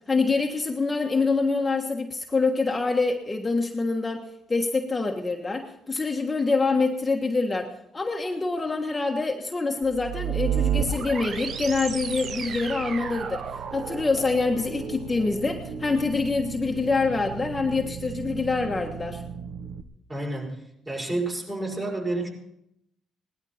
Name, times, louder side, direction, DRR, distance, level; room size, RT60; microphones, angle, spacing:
voice 1, 0.1-13.4 13.7-19.2, left 3 dB, 25° left, 2 dB, 1.4 m, -26 dB
sound 1, 9.8-19.8, right 7 dB, 60° right, 0.9 m, -32 dB
voice 2, 20.1-22.3, right 2 dB, 25° right, -1 dB, 5.9 m, -30 dB
18.5 x 12.0 x 4.3 m, 0.78 s
supercardioid pair, 75°, 0 cm